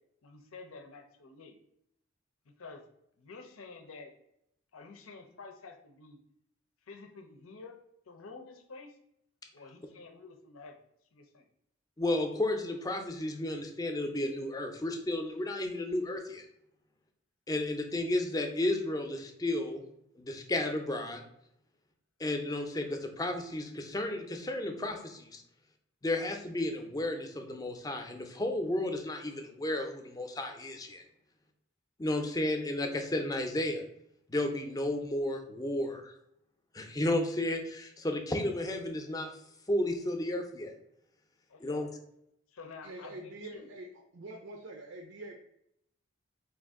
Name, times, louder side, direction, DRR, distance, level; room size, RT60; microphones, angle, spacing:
voice 1, 0.2-1.5 2.6-2.8 3.2-4.1 4.7-6.2 6.9-7.8 8.1-8.9 9.5-10.8 11.1-11.4 41.5-41.9 42.5-43.7, left 4 dB, 85° left, 4 dB, 0.6 m, -49 dB
voice 2, 12.0-16.4 17.5-19.8 20.2-21.2 22.2-25.4 26.0-31.0 32.0-33.8 34.3-36.1 36.7-39.3 39.7-40.7 41.6-41.9, left 1 dB, 20° left, 4 dB, 0.5 m, -33 dB
voice 3, 42.8-43.9 44.1-45.3, right 2 dB, 85° right, 2 dB, 0.6 m, -45 dB
4.6 x 2.5 x 3.6 m, 0.76 s
head